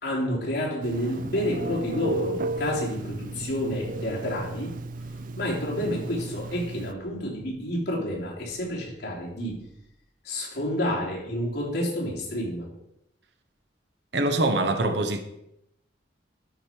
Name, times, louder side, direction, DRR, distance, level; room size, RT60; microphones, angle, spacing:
voice 1, 0.0-4.7 5.4-9.6 10.2-12.6, left 1 dB, 60° left, 3.3 m, -29 dB
Telephone, 0.8-6.9, right 2 dB, 45° right, 0.4 m, -34 dB
voice 2, 14.1-15.2, right 2 dB, 65° right, 1.0 m, -24 dB
12.5 x 5.2 x 4.6 m
head